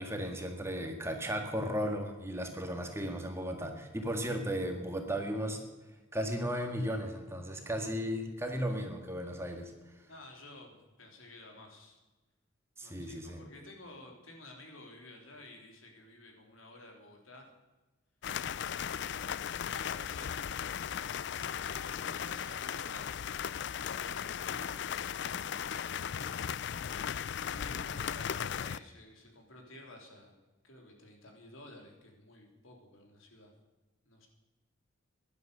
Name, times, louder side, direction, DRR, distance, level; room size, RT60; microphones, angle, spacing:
voice 1, 0.0-5.6 6.1-9.7 12.8-13.4, equal, 15° right, 4 dB, 1.7 m, -35 dB
voice 2, 10.1-12.0 12.8-17.5 19.7-20.5 21.4-23.3 23.6-26.5 27.4-30.3 30.6-33.5 34.0-34.3, left 1 dB, 80° left, 2 dB, 3.3 m, -53 dB
sound 1, 18.2-28.8, left 8 dB, 55° left, 0.4 m, -37 dB
16.0 x 11.0 x 6.7 m, 1.2 s
head